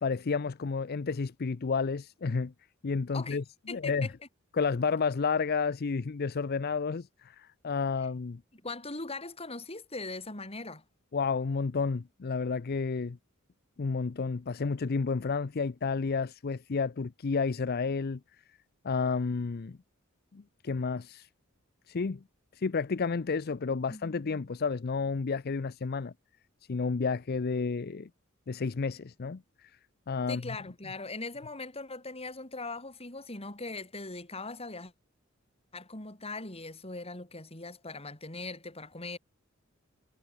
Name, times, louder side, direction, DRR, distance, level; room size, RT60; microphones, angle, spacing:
voice 1, 0.0-2.5 2.8-4.1 4.5-8.4 11.1-13.2 13.8-18.2 18.8-19.8 20.3-21.3 21.9-22.2 22.5-26.1 26.7-28.1 28.5-29.7 30.1-30.6, left 4 dB, 50° left, 0.5 m, -31 dB
voice 2, 3.7-4.1 8.5-10.8 23.7-24.5 30.3-34.9 35.7-39.2, left 3 dB, 30° left, 5.3 m, -40 dB
head